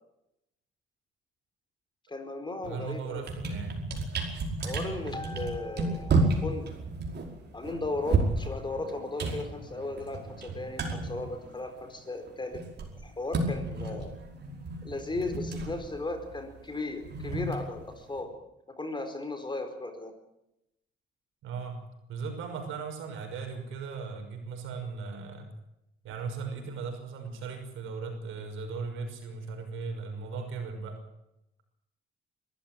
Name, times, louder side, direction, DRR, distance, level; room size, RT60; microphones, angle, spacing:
voice 1, 2.1-3.3 4.6-6.7 7.5-12.6 13.0-14.1 14.8-18.3 18.8-20.1, left 2 dB, 25° left, 7 dB, 4.7 m, -36 dB
sound 1, 2.6-2.8 3.1-12.0 12.3-18.2, right 3 dB, 55° right, 5.1 m, -32 dB
voice 2, 2.7-3.8 21.4-21.8 22.1-25.5 26.0-31.0, right 5 dB, 85° right, 5 dB, 5.8 m, -37 dB
23.0 x 14.5 x 9.1 m, 0.86 s
cardioid pair, 90°, 20 cm